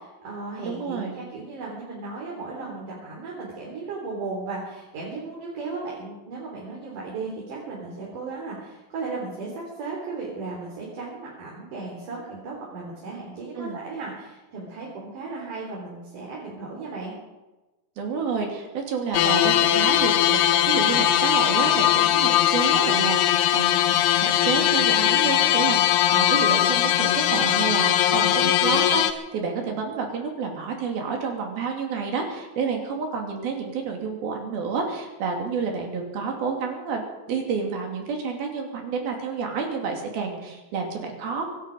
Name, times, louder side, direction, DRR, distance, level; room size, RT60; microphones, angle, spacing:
voice 1, 0.0-17.1, right 3 dB, 55° right, -4 dB, 5.0 m, -35 dB
voice 2, 0.7-1.2 13.6-13.8 18.0-37.0 37.3-41.5, right 5 dB, 75° right, 2 dB, 4.4 m, -29 dB
sound 1, 19.1-29.1, left 12 dB, 90° left, 2.8 m, -20 dB
24.5 x 11.0 x 5.3 m, 1.1 s
omnidirectional pair, 4.3 m